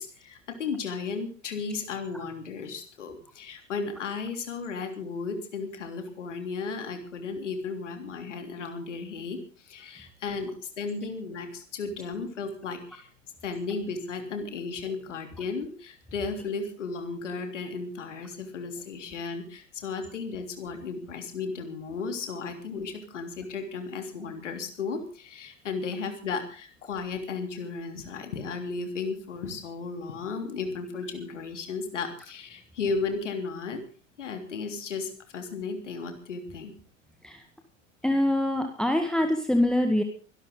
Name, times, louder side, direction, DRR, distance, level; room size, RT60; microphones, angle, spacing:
voice 1, 0.0-9.4 9.6-13.1 13.4-33.8 34.2-36.7, left 4 dB, 65° left, 6 dB, 3.4 m, -34 dB
voice 2, 38.0-40.0, left 1 dB, ahead, 5 dB, 1.8 m, -24 dB
24.0 x 12.5 x 3.9 m, 0.38 s
figure-of-eight pair, 90°, 39 cm